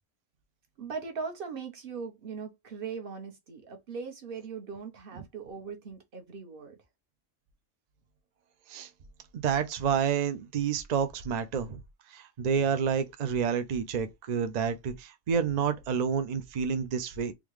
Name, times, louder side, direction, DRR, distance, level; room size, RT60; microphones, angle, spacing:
voice 1, 0.8-6.8, right 5 dB, 50° right, 1.0 m, -39 dB
voice 2, 9.3-11.8 12.1-17.3, right 7 dB, 70° right, 0.4 m, -29 dB
3.6 x 2.2 x 3.1 m
omnidirectional pair, 1.3 m